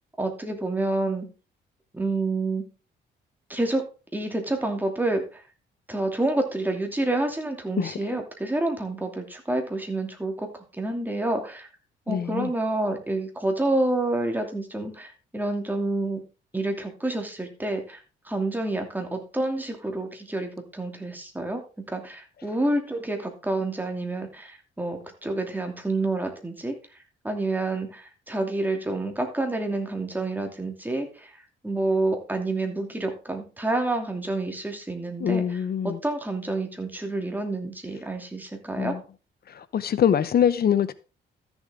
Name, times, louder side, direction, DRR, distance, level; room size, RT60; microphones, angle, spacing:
voice 1, 0.2-1.3 1.9-2.6 3.5-3.8 4.1-5.4 5.9-10.5 10.8-11.7 12.1-16.2 16.5-18.0 18.3-21.6 21.9-26.7 27.2-31.3 31.6-39.0, right 2 dB, 10° right, 2.7 m, -28 dB
voice 2, 7.8-8.2 12.1-12.5 35.2-36.0 38.8-39.0 39.5-40.9, left 8 dB, 50° left, 0.8 m, -24 dB
13.5 x 7.2 x 3.7 m
cardioid pair, 90°, 20 cm